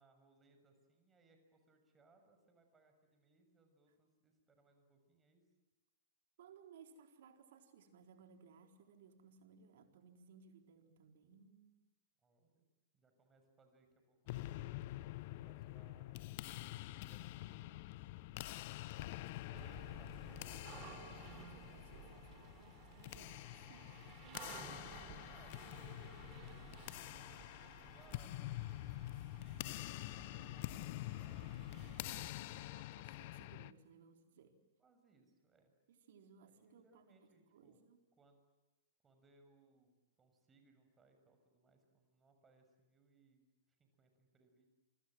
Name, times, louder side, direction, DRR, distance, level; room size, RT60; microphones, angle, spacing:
voice 1, 0.0-5.4 12.2-12.7 12.9-14.9 15.3-17.7 18.0-18.3 19.5-21.2 25.2-32.7 34.8-35.7 36.4-37.8 38.2-38.4 39.0-43.5 43.8-44.7, right 3 dB, 15° right, 6 dB, 6.9 m, -70 dB
voice 2, 6.4-11.8 19.0-19.9 21.3-25.2 31.7-34.6 35.9-38.1, right 6 dB, 60° right, 5 dB, 4.2 m, -63 dB
sound 1, 14.3-33.7, left 17 dB, 50° left, 0.9 m, -47 dB
sound 2, 19.5-32.3, right 8 dB, 35° right, 3.8 m, -56 dB
28.5 x 25.0 x 7.8 m, 1.1 s
figure-of-eight pair, 105°, 0 cm